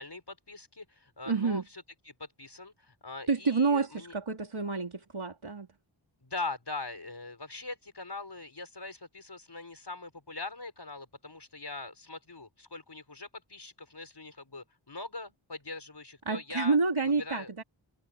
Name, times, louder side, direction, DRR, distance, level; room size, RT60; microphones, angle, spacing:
voice 1, 0.0-4.2 6.2-16.8 17.2-17.5, left 3 dB, 55° left, 5.5 m, -42 dB
voice 2, 1.3-1.6 3.3-5.7 16.3-17.6, right 4 dB, 85° right, 4.1 m, -28 dB
wide cardioid pair, 55°, 48 cm